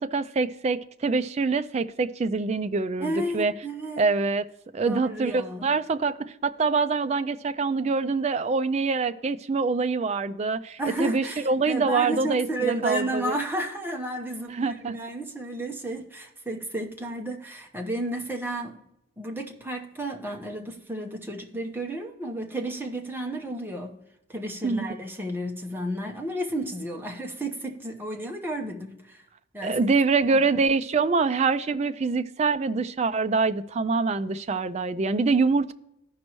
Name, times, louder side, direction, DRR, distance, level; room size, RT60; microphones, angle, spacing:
voice 1, 0.0-3.5 4.0-4.4 4.7-13.4 14.5-15.0 24.6-24.8 29.6-35.7, right 4 dB, 35° right, 0.3 m, -25 dB
voice 2, 3.0-4.0 4.8-5.7 10.8-18.9 19.2-24.0 24.3-29.2 29.5-29.9 30.3-30.4, right 1 dB, 10° right, 0.9 m, -32 dB
14.5 x 5.3 x 3.0 m
head